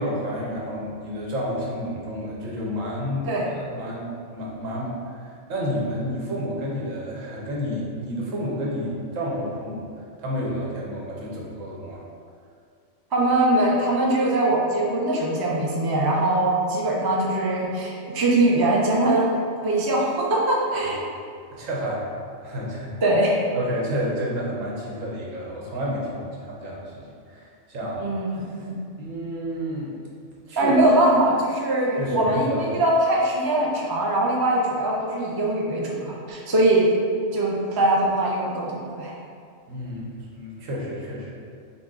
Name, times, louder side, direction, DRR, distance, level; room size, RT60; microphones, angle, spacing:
voice 1, 0.0-3.3 3.6-9.9 10.2-12.0 21.5-22.9 23.5-28.1 29.0-29.9 30.5-30.7 32.0-32.6 39.7-41.3, equal, 80° right, -4 dB, 1.3 m, -30 dB
voice 2, 13.1-19.3 19.6-21.0 23.0-23.4 28.0-28.8 30.6-36.9 37.3-39.1, right 1 dB, 30° right, -3 dB, 0.4 m, -22 dB
5.9 x 2.2 x 3.8 m, 2.3 s
omnidirectional pair, 1.3 m